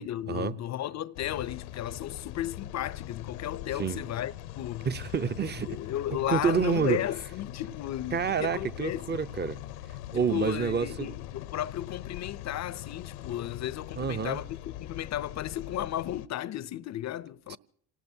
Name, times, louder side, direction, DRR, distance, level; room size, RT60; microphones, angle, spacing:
voice 1, 0.0-4.9 5.7-9.2 10.1-14.5 14.8-17.6, left 12 dB, 40° left, 0.6 m, -34 dB
sound 1, 1.1-16.3, left 13 dB, 80° left, 0.8 m, -42 dB
voice 2, 4.8-5.7 6.3-7.0 8.1-9.6 10.1-11.1 14.0-14.4 17.5-17.6, right 6 dB, 25° right, 0.6 m, -28 dB
28.0 x 19.0 x 2.7 m
hypercardioid pair, 65°, 45 cm